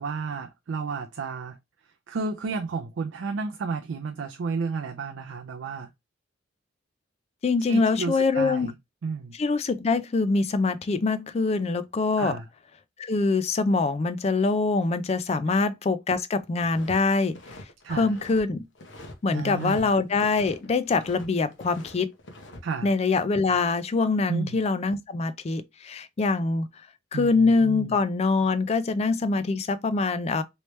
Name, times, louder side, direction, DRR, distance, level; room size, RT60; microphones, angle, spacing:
voice 1, 0.0-1.6 2.1-5.9 7.6-8.7 9.0-9.3 12.2-12.4 17.8-18.1 19.3-19.9 22.6-22.9 24.3-24.6 27.1-27.9, right 4 dB, 85° right, 0.4 m, -32 dB
voice 2, 7.4-8.7 9.3-12.3 13.0-17.3 17.9-18.6 19.2-22.1 22.8-26.7 27.1-30.4, left 3 dB, 35° left, 0.4 m, -24 dB
sound 1, 16.6-17.0 17.2-18.4 18.8-19.8 20.1-21.3 21.5-22.6, left 1 dB, 75° left, 0.9 m, -45 dB
3.1 x 3.1 x 3.1 m
head